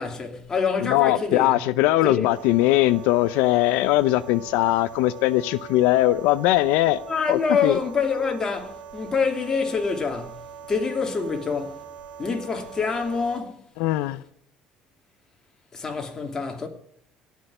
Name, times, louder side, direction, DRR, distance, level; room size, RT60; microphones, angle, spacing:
voice 1, 0.0-1.6 2.0-2.3 7.0-11.8 12.2-13.6 15.7-16.7, left 5 dB, 25° left, 2.9 m, -26 dB
voice 2, 0.8-7.0 7.3-7.8 13.8-14.2, left 16 dB, 85° left, 0.6 m, -20 dB
sound 1, 2.2-13.4, right 8 dB, 85° right, 2.7 m, -42 dB
18.0 x 6.4 x 10.0 m
cardioid pair, 120°, 2 cm